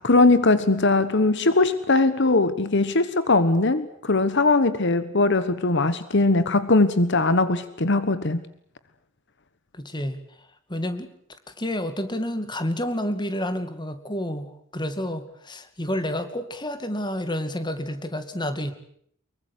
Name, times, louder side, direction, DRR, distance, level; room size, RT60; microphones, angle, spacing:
voice 1, 0.0-8.4, left 2 dB, 60° left, 1.3 m, -20 dB
voice 2, 9.7-10.2 10.7-11.1 11.6-18.7, left 1 dB, 20° left, 2.3 m, -29 dB
24.5 x 23.0 x 8.3 m
head